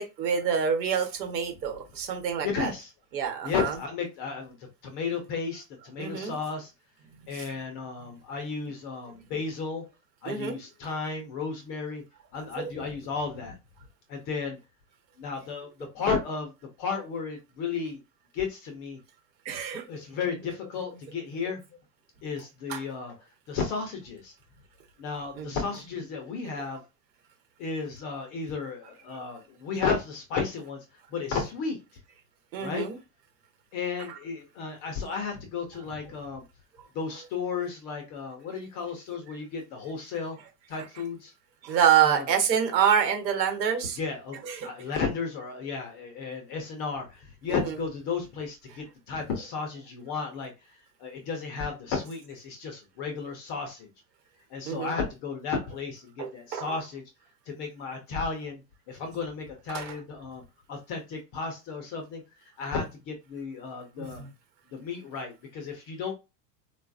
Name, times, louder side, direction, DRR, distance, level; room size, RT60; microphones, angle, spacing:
voice 1, 0.0-2.7 3.1-3.8 6.0-6.4 7.3-7.5 10.2-10.6 12.6-12.8 19.4-19.8 22.7-22.8 25.4-25.6 32.5-33.0 34.1-34.2 41.6-44.0 44.4-44.7 47.5-47.8 54.7-54.9 56.2-56.8 59.7-59.9 64.0-64.3, right 8 dB, 90° right, 1.3 m, -27 dB
voice 2, 2.4-2.9 3.4-4.6 4.8-6.7 7.3-9.9 10.2-12.0 12.3-13.6 14.1-14.6 15.2-15.7 15.9-16.5 16.8-18.0 18.3-19.0 19.9-21.6 22.2-23.1 23.5-24.3 25.0-26.8 27.6-30.8 31.1-31.8 32.6-32.9 33.7-36.4 36.9-40.4 40.7-41.3 42.0-42.2 44.0-44.4 44.6-50.5 51.0-53.9 54.5-57.0 57.5-58.6 58.9-60.4 60.7-62.2 62.6-64.2 64.7-66.1, left 5 dB, 25° left, 0.3 m, -33 dB
3.8 x 2.3 x 2.5 m
supercardioid pair, 140°, 49 cm